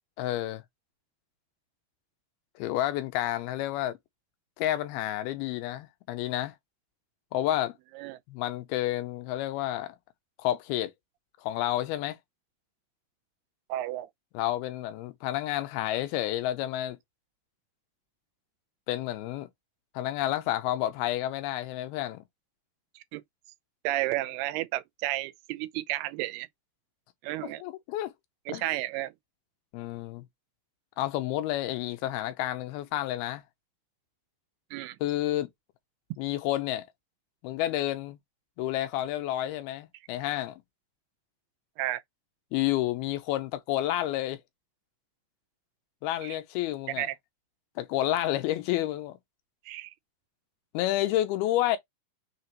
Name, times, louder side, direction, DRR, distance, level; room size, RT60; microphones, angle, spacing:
voice 1, 0.2-0.6 2.6-4.0 4.6-6.5 7.3-7.7 8.3-10.0 10.4-10.9 11.4-12.2 14.3-17.0 18.9-19.5 20.0-22.2 27.4-28.1 28.5-28.6 29.7-30.2 31.0-33.4 35.0-35.5 36.2-36.9 37.4-38.2 38.6-40.6 42.5-44.4 46.0-47.1 47.8-49.2 50.7-51.8, left 14 dB, 85° left, 2.5 m, -30 dB
voice 2, 13.7-14.1 23.1-23.2 23.8-26.5 27.2-27.6 28.5-29.1 34.7-35.0 41.8-42.0 46.2-46.4 47.0-47.2 49.7-49.9, right 16 dB, 85° right, 2.6 m, -32 dB
6.6 x 2.8 x 2.8 m
omnidirectional pair, 4.6 m